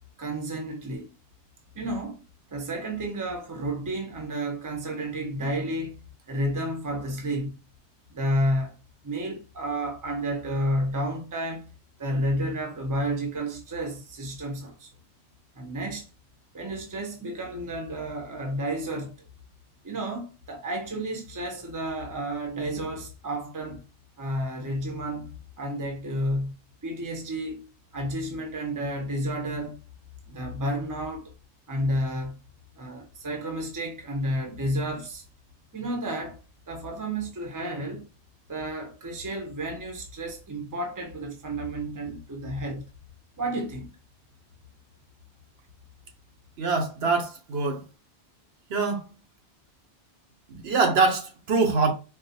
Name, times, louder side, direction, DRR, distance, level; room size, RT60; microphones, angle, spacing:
voice 1, 0.2-1.1 1.7-2.2 2.5-7.5 8.1-8.7 9.0-11.7 12.0-14.9 15.5-16.1 16.5-19.1 19.8-23.8 24.2-26.5 26.8-27.7 27.9-29.8 30.3-31.3 31.7-32.4 32.8-35.2 35.7-36.4 36.7-38.0 38.5-42.9 43.4-43.9, right 1 dB, 20° right, 0.6 m, -31 dB
voice 2, 46.6-47.8 48.7-49.0 50.5-51.9, right 4 dB, 70° right, 0.9 m, -24 dB
3.9 x 2.4 x 2.7 m
omnidirectional pair, 1.1 m